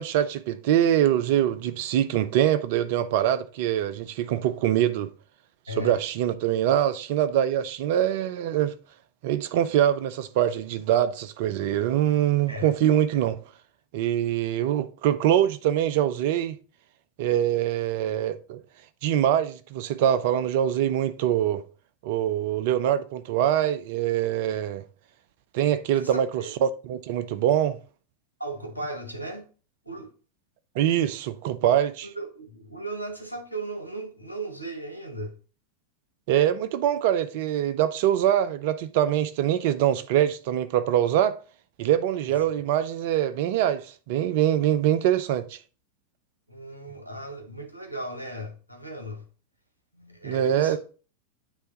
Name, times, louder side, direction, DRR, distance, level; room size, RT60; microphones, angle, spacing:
voice 1, 0.0-5.1 5.8-8.7 9.2-13.4 13.9-16.6 17.2-18.6 19.0-21.6 22.0-24.8 25.5-27.8 30.8-32.1 36.3-41.4 41.8-45.6 50.2-50.8, right 11 dB, 50° right, 0.5 m, -24 dB
voice 2, 5.7-6.0 12.5-12.7 26.0-26.5 28.4-29.4 29.8-30.1 32.0-35.3 46.5-49.2 49.9-50.8, right 1 dB, 85° right, 1.2 m, -36 dB
8.1 x 3.3 x 3.9 m
figure-of-eight pair, 90°, 0 cm